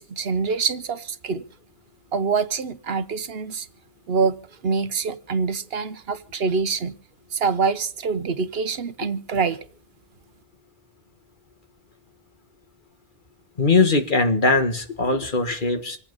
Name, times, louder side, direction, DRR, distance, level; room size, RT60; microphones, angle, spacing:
voice 1, 0.0-1.4 2.1-3.7 4.1-4.4 4.6-7.0 7.3-9.6, right 5 dB, 70° right, 1.2 m, -25 dB
voice 2, 13.6-16.0, left 3 dB, 50° left, 1.8 m, -20 dB
26.5 x 8.8 x 5.4 m
omnidirectional pair, 1.0 m